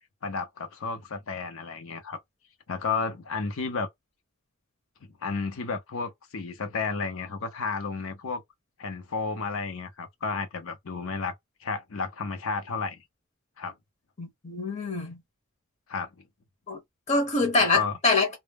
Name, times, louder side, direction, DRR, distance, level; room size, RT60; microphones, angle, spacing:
voice 1, 0.2-2.2 2.7-3.9 5.0-8.4 8.8-11.3 11.6-13.0 13.6-13.7 15.9-16.1 17.7-17.9, left 4 dB, 65° left, 0.6 m, -32 dB
voice 2, 14.2-15.2 16.7-16.8 17.1-18.3, left 3 dB, 30° left, 0.7 m, -25 dB
2.0 x 2.0 x 3.3 m
head